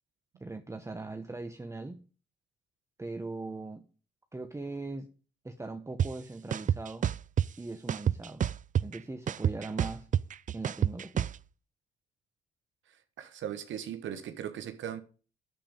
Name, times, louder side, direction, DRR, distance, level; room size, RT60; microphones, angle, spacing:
voice 1, 0.4-2.0 3.0-3.8 4.3-5.1 5.4-7.1 7.6-8.5 8.8-10.1 10.5-11.3, right 3 dB, 15° right, 1.1 m, -40 dB
sound 1, 6.0-6.1 6.5-7.5 7.9-9.0 9.3-11.4, right 9 dB, 40° right, 0.5 m, -27 dB
voice 2, 12.9-15.0, right 9 dB, 70° right, 1.3 m, -39 dB
8.6 x 7.8 x 9.0 m
cardioid pair, 90°, 20 cm